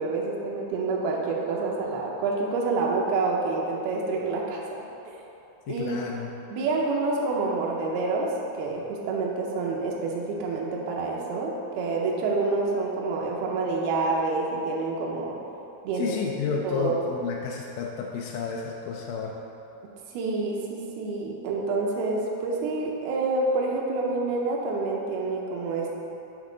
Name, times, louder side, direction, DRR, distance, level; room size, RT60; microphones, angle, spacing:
voice 1, 0.0-4.6 5.1-5.2 5.7-6.0 6.5-8.3 8.6-15.4 15.8-16.1 16.6-17.0 20.1-25.9, right 3 dB, 80° right, -2 dB, 2.6 m, -27 dB
voice 2, 5.7-6.3 15.9-19.4, left 6 dB, 85° left, -1 dB, 1.9 m, -31 dB
10.0 x 3.6 x 5.0 m, 3.0 s
omnidirectional pair, 4.4 m